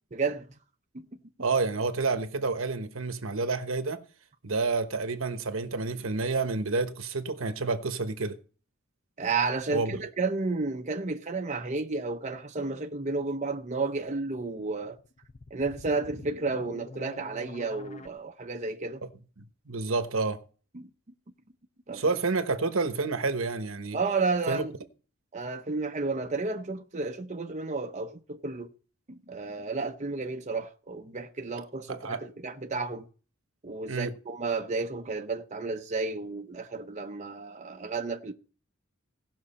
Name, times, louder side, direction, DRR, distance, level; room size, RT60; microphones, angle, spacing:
voice 1, 0.1-0.5 0.9-1.1 9.2-15.0 15.5-19.0 20.7-20.9 21.9-22.0 23.9-24.7 25.3-28.7 29.1-33.1 33.6-38.3, right 3 dB, 35° right, 0.8 m, -32 dB
voice 2, 1.4-4.0 4.4-8.4 9.7-10.0 19.7-20.4 21.9-24.0 24.5-24.7 31.9-32.2 33.9-34.1, right 3 dB, 75° right, 1.1 m, -29 dB
sound 1, 14.9-18.1, left 2 dB, 35° left, 0.7 m, -46 dB
17.5 x 6.2 x 4.2 m
head